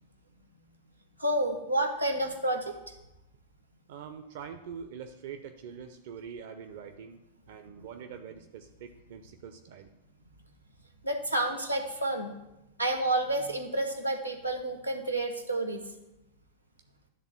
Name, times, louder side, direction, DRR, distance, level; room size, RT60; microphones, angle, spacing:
voice 1, 1.2-2.8 7.8-7.9 11.0-12.3 12.8-15.8, right 1 dB, 90° right, 5 dB, 1.1 m, -30 dB
voice 2, 3.9-9.9, right 7 dB, 55° right, 7 dB, 0.6 m, -44 dB
10.5 x 3.5 x 7.3 m, 0.93 s
figure-of-eight pair, 90°, 0 cm